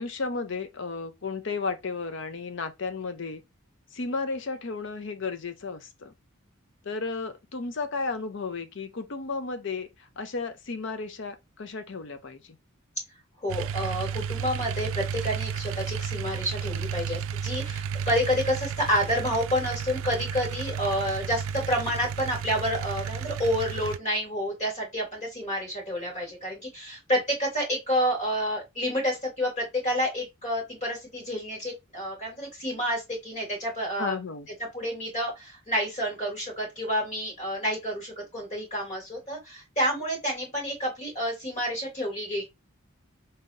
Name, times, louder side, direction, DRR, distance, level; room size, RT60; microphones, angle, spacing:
voice 1, 0.0-3.4 3.9-6.1 6.9-9.9 10.2-12.4 34.0-34.5, left 4 dB, 60° left, 0.6 m, -33 dB
voice 2, 13.4-34.2 34.7-42.4, equal, 35° left, 2.6 m, -29 dB
sound 1, 13.5-24.0, right 7 dB, 75° right, 0.4 m, -33 dB
4.0 x 3.8 x 2.6 m
head